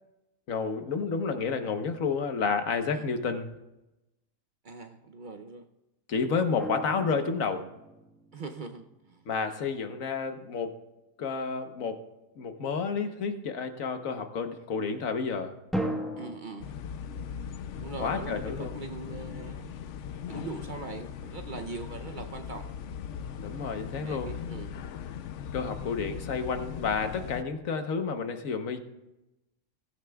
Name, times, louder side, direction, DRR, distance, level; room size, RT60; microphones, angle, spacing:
voice 1, 0.5-3.5 6.1-7.7 9.3-10.7 11.2-12.1 12.4-15.5 18.0-18.7 23.4-24.3 25.5-28.8, left 5 dB, 85° left, 7 dB, 1.4 m, -30 dB
voice 2, 4.6-5.7 8.3-9.2 16.2-16.7 17.7-19.7 20.3-22.7 24.0-24.8, right 4 dB, 50° right, 6 dB, 0.7 m, -41 dB
sound 1, 6.6-8.7 15.7-16.4, equal, ahead, 1.0 m, -35 dB
sound 2, 16.6-27.4, left 8 dB, 70° left, 0.9 m, -39 dB
16.5 x 14.5 x 2.3 m, 0.97 s
omnidirectional pair, 1.4 m